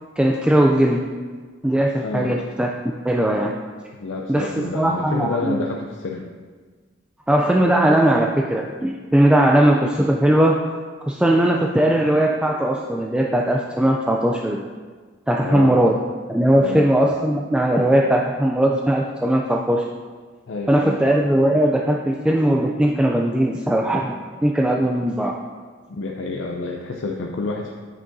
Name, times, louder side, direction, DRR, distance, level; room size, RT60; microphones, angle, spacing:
voice 1, 0.2-1.0 1.6-2.7 3.0-3.5 4.3-5.6 7.3-10.6 11.0-14.6 15.3-16.0 16.3-19.8 20.7-24.1 24.4-25.3, right 1 dB, 5° right, 0 dB, 0.3 m, -19 dB
voice 2, 2.0-2.4 3.9-6.3 15.4-15.8 16.6-16.9 20.5-21.0 25.9-27.7, left 3 dB, 80° left, 0 dB, 0.5 m, -28 dB
8.9 x 6.0 x 2.6 m, 1.5 s
head